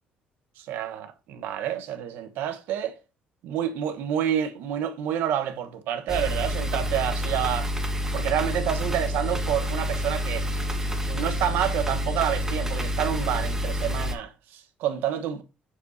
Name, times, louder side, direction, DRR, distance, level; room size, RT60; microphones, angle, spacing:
voice 1, 0.6-3.0 3.4-7.7 8.1-10.5 11.1-15.4, right 10 dB, 80° right, 1.1 m, -28 dB
sound 1, 6.1-14.2, equal, 15° right, 1.3 m, -28 dB
7.2 x 6.9 x 2.7 m
cardioid pair, 105°, 3 cm